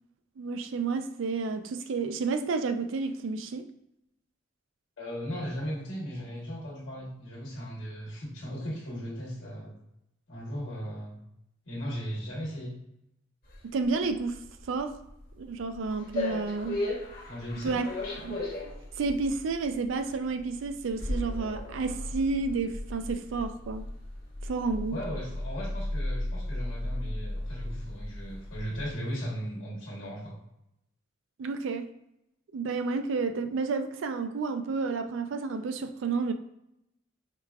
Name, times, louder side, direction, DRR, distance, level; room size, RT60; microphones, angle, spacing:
voice 1, 0.4-3.6 13.7-14.4 14.7-14.9 15.4-16.8 17.6-17.8 18.2-18.4 19.0-23.8 24.4-25.0 31.4-31.9 32.5-36.3, right 4 dB, 70° right, 8 dB, 0.4 m, -30 dB
voice 2, 5.0-9.7 10.3-11.2 11.7-12.8 17.3-17.8 24.9-30.4, equal, 80° left, -5 dB, 1.1 m, -37 dB
sound 1, 13.4-28.9, left 1 dB, 45° left, 1.0 m, -36 dB
4.7 x 2.3 x 2.3 m, 0.82 s
head